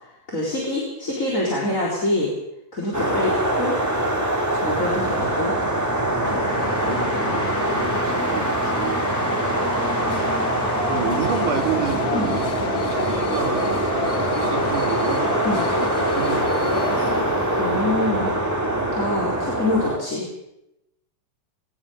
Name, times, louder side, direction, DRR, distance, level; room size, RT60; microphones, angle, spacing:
voice 1, 0.3-2.3 2.7-3.8 4.6-5.5 10.2-10.5 11.1-11.2 12.1-12.4 15.4-15.7 17.6-18.3 18.9-20.3, left 1 dB, 25° left, -3 dB, 4.2 m, -25 dB
sound 1, 2.9-20.0, right 1 dB, 5° right, 2.6 m, -23 dB
voice 2, 6.0-9.3 10.9-12.4 12.9-13.7 14.4-15.4 15.8-17.4, right 8 dB, 70° right, 3 dB, 3.9 m, -31 dB
sound 2, 6.2-18.5, left 5 dB, 45° left, 1.2 m, -31 dB
21.0 x 19.0 x 6.9 m, 0.87 s
omnidirectional pair, 3.8 m